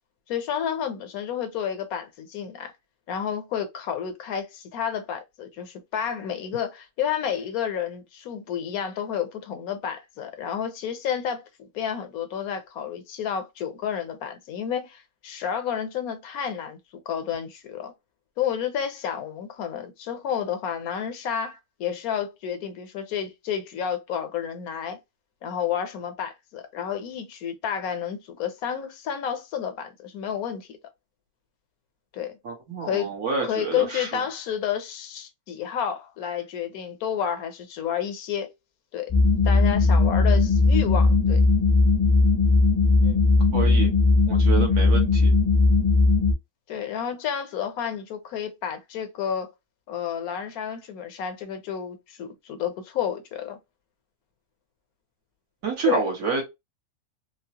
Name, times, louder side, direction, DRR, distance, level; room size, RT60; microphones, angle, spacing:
voice 1, 0.3-2.7 3.1-17.9 18.4-25.0 25.4-30.8 32.1-32.4 32.8-33.2 33.4-38.5 38.9-39.1 39.4-41.4 43.0-43.2 46.7-49.5 49.9-53.6 55.8-56.1, left 8 dB, 75° left, 1.1 m, -30 dB
voice 2, 32.4-34.2 43.5-43.9 44.3-45.3 55.6-56.4, right 5 dB, 80° right, 1.7 m, -28 dB
sound 1, 39.1-46.3, left 3 dB, 20° left, 0.5 m, -18 dB
3.7 x 2.1 x 2.8 m
omnidirectional pair, 1.5 m